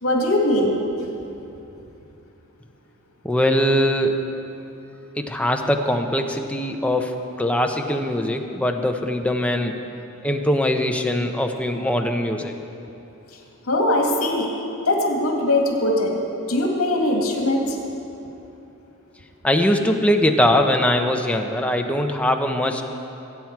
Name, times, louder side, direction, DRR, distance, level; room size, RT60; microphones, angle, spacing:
voice 1, 0.0-1.1 13.7-14.5 14.9-16.2 16.5-17.8, left 1 dB, 70° left, 0 dB, 2.2 m, -21 dB
voice 2, 3.2-4.1 5.2-9.7 10.2-12.5 19.4-22.8, left 1 dB, 5° left, 3 dB, 0.8 m, -21 dB
22.0 x 8.9 x 4.7 m, 2.9 s
head